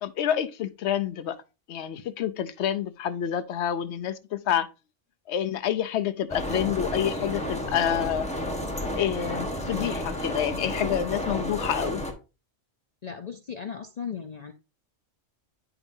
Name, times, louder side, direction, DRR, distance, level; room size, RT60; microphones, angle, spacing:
voice 1, 0.0-1.4 1.7-4.7 5.3-8.3 8.9-12.0, left 10 dB, 70° left, 0.9 m, -28 dB
sound 1, 6.3-12.1, equal, 5° left, 1.1 m, -31 dB
voice 2, 13.0-14.5, left 7 dB, 50° left, 0.5 m, -36 dB
10.0 x 4.9 x 2.6 m
omnidirectional pair, 1.2 m